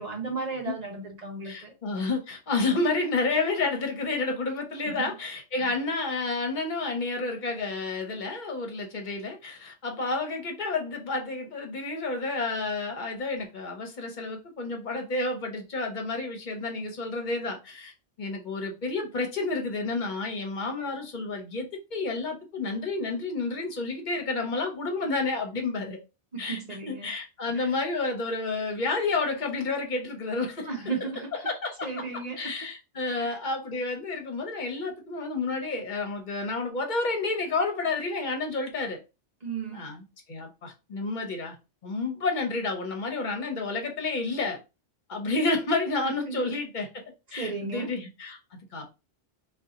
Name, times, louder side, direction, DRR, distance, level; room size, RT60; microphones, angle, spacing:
voice 1, 0.0-1.7 4.8-5.1 5.6-5.8 26.3-27.1 27.5-27.7 30.7-31.5 31.8-32.7 33.0-33.4 39.4-39.9 46.0-46.4 47.4-47.9, right 4 dB, 40° right, 0.9 m, -35 dB
voice 2, 1.4-17.9 18.2-26.0 26.4-26.6 26.9-30.7 31.4-31.9 32.4-39.0 39.7-41.6 41.8-44.6 45.1-47.0 47.3-48.9, left 3 dB, 45° left, 0.9 m, -30 dB
2.7 x 2.4 x 3.6 m
omnidirectional pair, 1.2 m